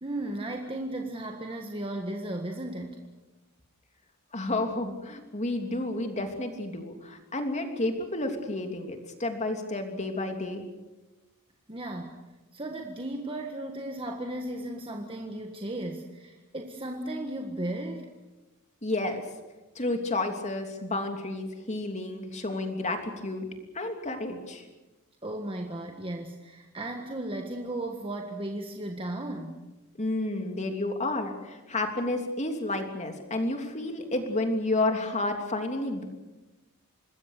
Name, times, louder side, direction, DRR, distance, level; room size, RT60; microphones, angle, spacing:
voice 1, 0.0-3.0 11.7-12.2 12.5-18.1 25.2-29.6, right 1 dB, 25° right, 2 dB, 1.6 m, -35 dB
voice 2, 4.3-10.7 18.8-19.2 19.7-23.5 23.7-24.6 30.0-36.1, left 2 dB, 30° left, 4 dB, 3.1 m, -31 dB
26.5 x 20.5 x 6.8 m, 1.1 s
head